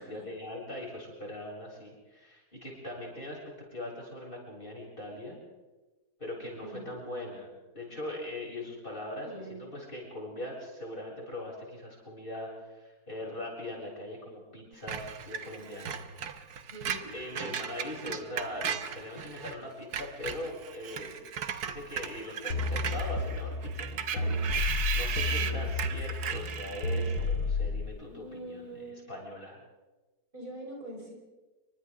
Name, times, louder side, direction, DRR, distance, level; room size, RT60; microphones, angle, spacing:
voice 1, 0.1-3.4 3.7-5.4 6.2-16.0 17.1-21.2 21.6-28.8 29.1-29.6, left 1 dB, 30° left, -3 dB, 7.8 m, -41 dB
voice 2, 6.6-7.0 9.1-9.6 16.7-17.1 25.3-25.6 28.1-29.2 30.3-31.1, right 1 dB, 30° right, -3 dB, 5.5 m, -44 dB
Screech, 14.9-19.6 19.8-27.3, right 7 dB, 80° right, 1.6 m, -37 dB
sound 1, 22.5-27.8, left 2 dB, 90° left, 2.1 m, -31 dB
29.5 x 24.5 x 3.8 m, 1.2 s
omnidirectional pair, 1.7 m